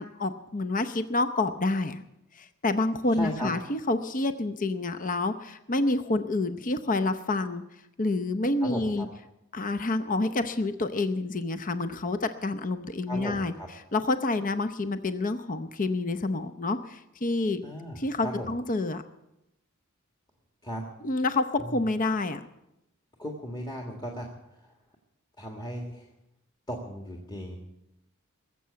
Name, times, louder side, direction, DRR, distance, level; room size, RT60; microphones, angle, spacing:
voice 1, 0.0-2.0 2.3-7.6 8.0-9.1 9.5-13.5 13.9-17.6 18.0-19.0 21.0-22.5, left 2 dB, 40° left, 10 dB, 0.7 m, -28 dB
voice 2, 3.2-3.5 8.6-9.1 13.1-13.7 17.6-18.5 20.6-20.8 21.6-21.8 23.2-24.3 24.6-24.7 25.4-26.1 26.7-27.6, equal, 20° left, 0 dB, 1.7 m, -36 dB
20.0 x 7.7 x 8.3 m, 0.88 s
head